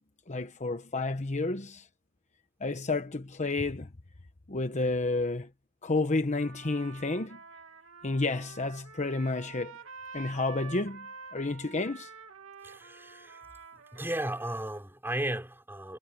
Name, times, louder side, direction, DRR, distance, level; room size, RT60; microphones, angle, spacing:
voice 1, 0.3-1.8 2.6-3.9 4.5-5.5 5.8-7.4 8.0-9.8 10.1-11.1 11.3-12.1, left 3 dB, 35° left, 1.0 m, -30 dB
Trumpet, 6.3-14.8, right 5 dB, 75° right, 2.9 m, -48 dB
voice 2, 12.6-13.4 13.9-16.0, right 1 dB, 10° right, 4.4 m, -35 dB
head